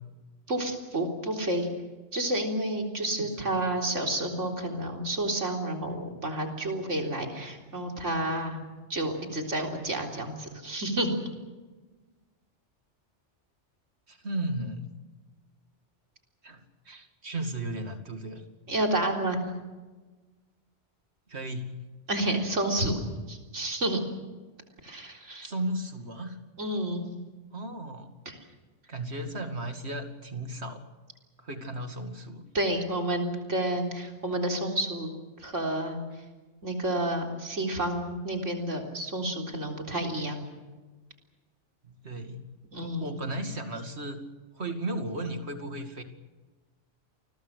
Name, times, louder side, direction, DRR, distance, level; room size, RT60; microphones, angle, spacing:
voice 1, 0.5-1.7 2.1-8.6 8.9-11.1 18.7-19.4 22.1-23.0 23.3-24.0 24.8-25.5 26.6-27.0 28.3-28.4 32.5-35.1 35.4-36.0 36.6-40.5 42.7-43.1, right 1 dB, 90° right, 2 dB, 4.2 m, -30 dB
voice 2, 3.2-3.6 14.1-14.9 16.4-18.4 21.3-21.8 25.4-26.4 27.5-28.2 28.9-30.8 31.4-32.5 41.9-42.4 42.8-44.2 44.6-46.0, right 1 dB, 60° right, 6 dB, 2.6 m, -35 dB
28.5 x 22.0 x 6.6 m, 1.3 s
omnidirectional pair, 1.2 m